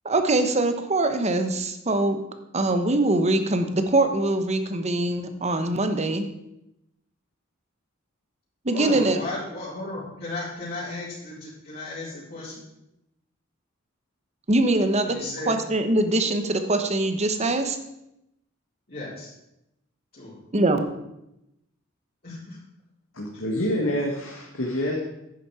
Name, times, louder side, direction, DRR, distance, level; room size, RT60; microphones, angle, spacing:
voice 1, 0.0-2.2 2.5-6.3 8.6-9.2 14.5-15.2 15.5-17.8 20.5-20.8, right 2 dB, 35° right, 8 dB, 1.1 m, -23 dB
voice 2, 8.7-12.6 15.1-15.5 18.9-19.3 20.1-20.3 22.2-22.6, left 2 dB, 50° left, -11 dB, 4.2 m, -35 dB
voice 3, 23.1-25.0, equal, 70° left, -2 dB, 1.8 m, -27 dB
11.0 x 8.7 x 4.9 m, 0.85 s
head